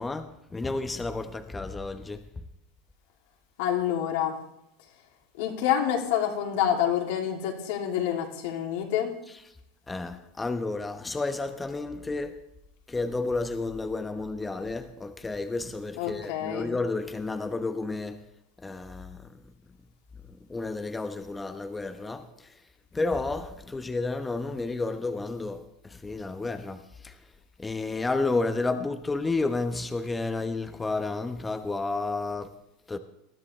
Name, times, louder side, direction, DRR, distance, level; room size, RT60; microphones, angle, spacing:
voice 1, 0.0-2.2 9.9-12.4 12.9-18.2 18.6-19.4 20.5-22.5 22.9-27.2 27.6-32.5 32.9-33.0, left 3 dB, 15° left, 1.1 m, -31 dB
voice 2, 3.6-4.4 5.4-9.1 16.0-16.7, left 10 dB, 70° left, 2.9 m, -27 dB
20.0 x 13.0 x 3.3 m
hypercardioid pair, 100°, 0 cm